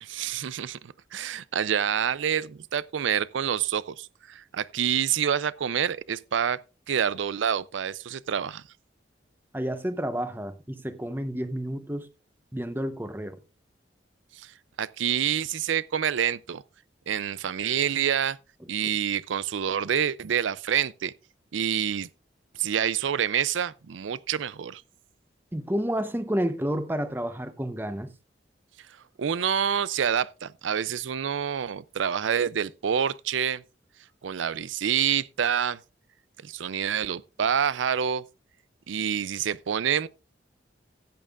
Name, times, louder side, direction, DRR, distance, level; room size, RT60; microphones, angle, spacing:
voice 1, 0.0-6.6 6.9-8.6 14.3-14.5 14.8-16.6 17.1-18.4 18.7-21.1 21.5-22.1 22.6-24.8 29.2-33.6 34.2-35.8 36.4-38.2 38.9-40.1, right 8 dB, 90° right, 0.5 m, -27 dB
voice 2, 9.5-12.1 12.5-13.4 25.5-28.1, equal, 10° right, 0.8 m, -30 dB
16.0 x 8.8 x 2.5 m
head